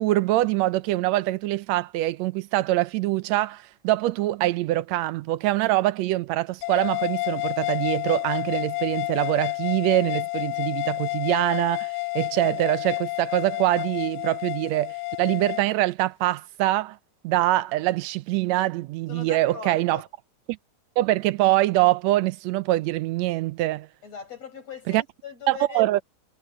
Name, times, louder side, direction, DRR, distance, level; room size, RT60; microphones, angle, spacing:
voice 1, 0.0-17.0 17.2-20.0 20.5-20.6 21.0-23.9 24.9-25.0 25.5-26.0, right 16 dB, 75° right, 1.8 m, -24 dB
sound 1, 6.6-15.7, left 28 dB, 80° left, 1.4 m, -30 dB
voice 2, 19.1-20.1 24.0-25.8, left 6 dB, 60° left, 8.6 m, -40 dB
omnidirectional pair, 3.3 m